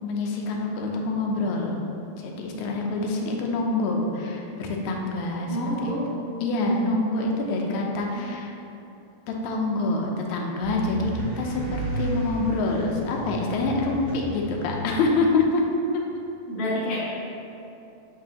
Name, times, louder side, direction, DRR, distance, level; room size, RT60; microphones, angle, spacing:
voice 1, 0.0-1.8 2.2-5.9 6.4-8.5 9.3-15.6 15.9-16.0, left 2 dB, 85° left, 0 dB, 2.1 m, -26 dB
voice 2, 5.5-6.1 8.1-8.3 16.5-17.0, left 1 dB, 65° left, -9 dB, 2.0 m, -28 dB
sound 1, 10.6-15.2, right 2 dB, 55° right, 1.9 m, -33 dB
8.0 x 4.7 x 2.9 m, 2.7 s
omnidirectional pair, 3.3 m